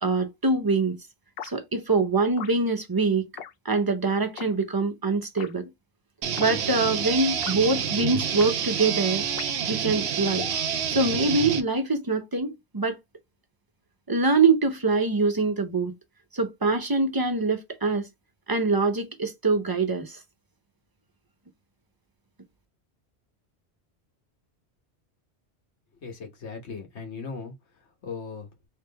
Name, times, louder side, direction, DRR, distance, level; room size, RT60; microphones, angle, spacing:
voice 1, 0.0-1.0 1.4-3.2 3.6-5.7 6.4-9.2 9.7-10.4 10.9-13.0 14.1-15.9 16.3-18.1 18.5-20.2, right 3 dB, 25° right, 0.7 m, -24 dB
sound 1, 1.4-1.6 2.4-2.6 3.4-3.5 4.4-4.5 5.4-5.5 6.4-6.5 7.4-7.6 8.4-8.5 9.4-9.7 10.4-10.6, left 8 dB, 65° left, 0.8 m, -38 dB
sound 2, 6.2-11.6, right 8 dB, 75° right, 1.0 m, -28 dB
voice 2, 26.0-27.5 28.0-28.5, left 5 dB, 90° left, 1.5 m, -37 dB
3.6 x 3.2 x 3.4 m
omnidirectional pair, 1.1 m